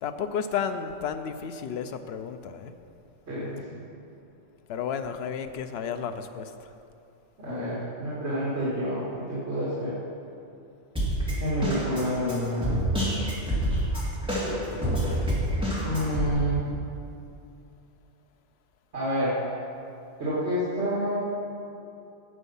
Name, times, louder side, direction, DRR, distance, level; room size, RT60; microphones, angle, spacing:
voice 1, 0.0-2.7 4.7-6.5, left 7 dB, 65° left, 8 dB, 0.8 m, -32 dB
voice 2, 3.3-3.8 7.4-9.9 11.3-12.8 15.8-16.6 18.9-19.4 20.2-21.2, equal, 65° right, -10 dB, 2.5 m, -28 dB
Drum kit, 11.0-16.3, equal, 5° right, 2.3 m, -27 dB
9.9 x 8.2 x 5.5 m, 2.7 s
omnidirectional pair, 1.2 m